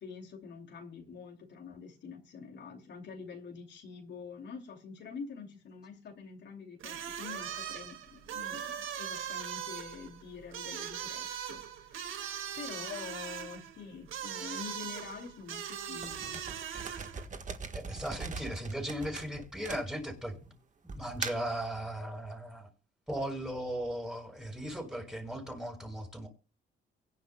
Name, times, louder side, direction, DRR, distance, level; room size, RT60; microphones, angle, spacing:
voice 1, 0.0-12.0 12.5-16.4, left 5 dB, 65° left, 2 dB, 2.7 m, -46 dB
sound 1, 6.8-17.3, right 9 dB, 80° right, 2.0 m, -40 dB
sound 2, 16.0-20.3 20.9-21.6, right 5 dB, 40° right, 1.5 m, -41 dB
voice 2, 17.7-20.4 20.9-22.7 23.1-26.3, right 1 dB, 5° right, 3 dB, 6.0 m, -37 dB
24.0 x 10.5 x 2.3 m, 0.33 s
cardioid pair, 115°, 20 cm